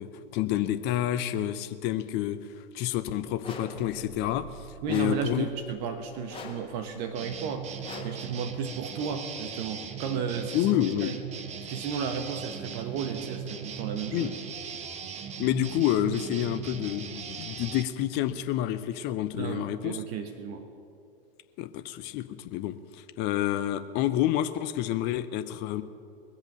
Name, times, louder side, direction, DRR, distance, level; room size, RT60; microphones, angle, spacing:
voice 1, 0.0-5.5 10.5-11.2 14.1-14.3 15.4-20.0 21.6-25.8, left 12 dB, 35° left, 12 dB, 0.7 m, -29 dB
sound 1, 3.4-3.9 4.9-5.3 6.3-6.8 7.8-8.3, left 3 dB, 20° left, 2.1 m, -41 dB
sound 2, 3.7-7.8, right 3 dB, 65° right, 2.3 m, -50 dB
voice 2, 4.8-10.7 11.0-11.2 11.6-14.3 19.4-20.7, right 6 dB, 45° right, 7 dB, 1.3 m, -34 dB
sound 3, 7.2-17.8, right 7 dB, 25° right, 1.0 m, -39 dB
20.5 x 8.0 x 6.9 m, 2.4 s
figure-of-eight pair, 95°, 29 cm